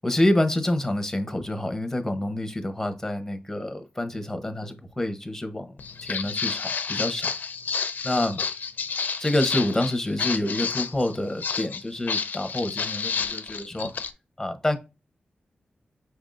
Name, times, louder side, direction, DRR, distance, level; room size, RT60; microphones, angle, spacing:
voice 1, 0.0-5.7 6.0-7.3 8.0-8.4 9.2-13.9 14.4-14.8, left 1 dB, 10° left, 0.8 m, -27 dB
Walk footsteps, 5.8-14.1, left 6 dB, 75° left, 0.4 m, -30 dB
5.6 x 3.5 x 2.5 m
wide cardioid pair, 125°, 3 cm